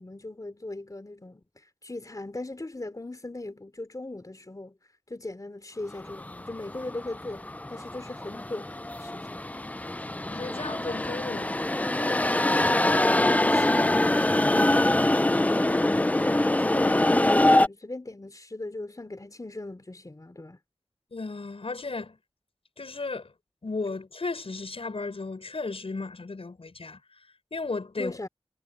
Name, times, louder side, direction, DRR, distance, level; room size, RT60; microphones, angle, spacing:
voice 1, 0.0-9.5 12.0-20.6 28.0-28.3, left 2 dB, 35° left, 3.5 m, -39 dB
sound 1, 6.0-17.7, left 1 dB, 15° left, 0.4 m, -24 dB
voice 2, 10.3-11.7 21.1-22.2 22.8-23.3 23.6-27.0 27.5-28.1, left 3 dB, 70° left, 6.9 m, -34 dB
wide cardioid pair, 55°, 10 cm